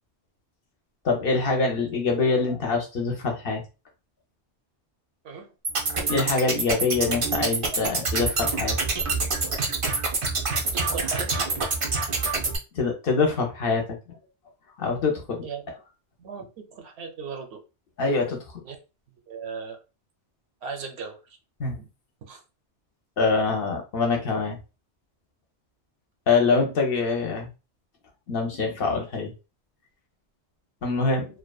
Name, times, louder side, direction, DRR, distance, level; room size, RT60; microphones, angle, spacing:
voice 1, 1.0-3.6 6.1-8.8 12.7-14.2 14.8-15.4 18.0-18.4 21.6-21.7 23.2-24.6 26.3-27.5 28.3-29.3 30.8-31.3, left 4 dB, 60° left, 0.7 m, -24 dB
sound 1, 5.6-12.6, right 3 dB, 50° right, 0.3 m, -26 dB
voice 2, 10.7-11.4 15.4-15.7 16.2-17.6 18.6-18.8 19.3-19.8 20.6-21.2 21.7-21.9 22.3-22.4, right 5 dB, 70° right, 0.8 m, -37 dB
2.6 x 2.2 x 2.2 m
omnidirectional pair, 1.2 m